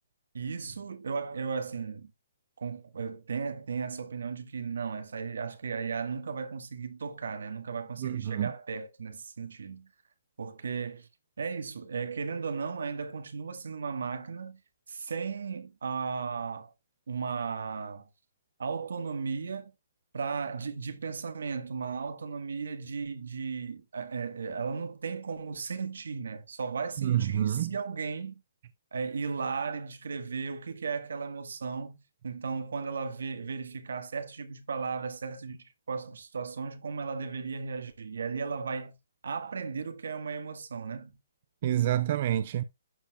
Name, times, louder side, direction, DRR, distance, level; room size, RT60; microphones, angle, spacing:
voice 1, 0.3-2.1 2.6-9.9 10.4-11.1 11.4-14.6 14.9-16.7 17.1-18.1 18.6-19.7 20.1-28.3 28.9-39.0 39.2-41.1, right 5 dB, 75° right, 1.3 m, -35 dB
voice 2, 8.0-8.5 27.0-27.7 41.6-42.6, right 11 dB, 40° right, 0.4 m, -28 dB
11.5 x 4.9 x 2.2 m
hypercardioid pair, 165°, 0 cm